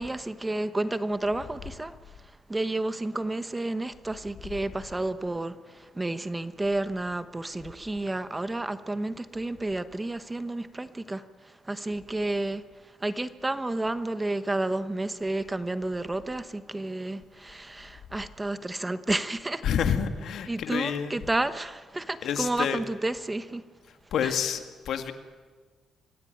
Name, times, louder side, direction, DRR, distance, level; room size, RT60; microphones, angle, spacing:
voice 1, 0.0-1.9 2.5-11.2 11.6-12.6 13.0-19.6 20.5-23.6 24.2-24.6, right 2 dB, 15° right, 1.0 m, -31 dB
voice 2, 19.6-21.2 22.2-22.8 24.1-25.1, left 8 dB, 70° left, 2.0 m, -28 dB
24.5 x 16.0 x 9.3 m
cardioid pair, 90°, 0 cm